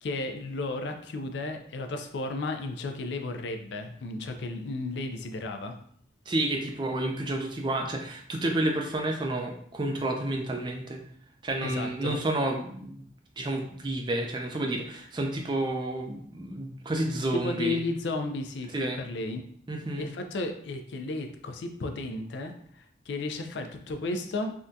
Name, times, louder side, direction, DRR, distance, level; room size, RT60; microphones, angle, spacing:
voice 1, 0.0-5.7 11.6-12.2 17.1-19.4 20.0-24.5, left 2 dB, 75° left, 6 dB, 0.4 m, -33 dB
voice 2, 6.3-11.0 11.4-13.1 13.4-17.8 18.7-19.0 19.7-20.1, right 1 dB, 25° right, 3 dB, 0.4 m, -30 dB
3.6 x 2.2 x 2.6 m, 0.63 s
head